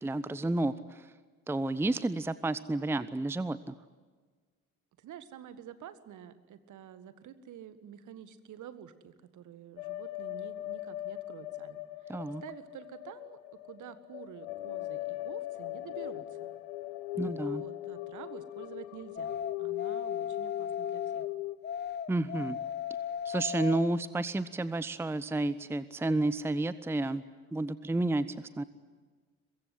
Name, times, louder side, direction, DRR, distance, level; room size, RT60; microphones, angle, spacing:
voice 1, 0.0-1.1 1.5-3.7 12.1-12.4 17.2-17.6 22.1-22.6 23.2-27.2 27.5-28.3 28.6-28.7, right 2 dB, 5° right, 16 dB, 0.8 m, -31 dB
voice 2, 5.0-13.4 13.6-16.5 17.4-21.3, right 10 dB, 50° right, 12 dB, 1.8 m, -49 dB
sound 1, 9.8-21.6, left 16 dB, 70° left, 1.1 m, -39 dB
sound 2, 19.2-21.3 21.6-23.9, left 8 dB, 25° left, 1.1 m, -36 dB
23.0 x 22.0 x 10.0 m, 1.4 s
figure-of-eight pair, 50°, 39 cm